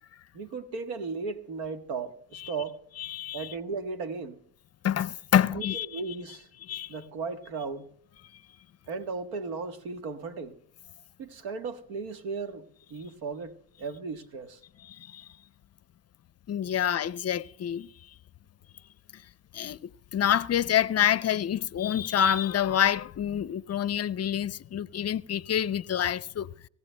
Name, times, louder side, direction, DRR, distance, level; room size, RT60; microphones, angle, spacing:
voice 1, 0.3-2.8 3.3-4.4 5.5-6.5 6.9-7.9 8.9-10.6 11.2-12.6 12.9-14.6, right 4 dB, 90° right, 1.4 m, -36 dB
voice 2, 3.0-3.5 4.8-5.9 6.7-6.9 14.8-15.3 16.5-17.9 19.1-19.2 19.5-26.5, left 10 dB, 40° left, 0.5 m, -27 dB
25.0 x 15.0 x 2.2 m
supercardioid pair, 75°, 42 cm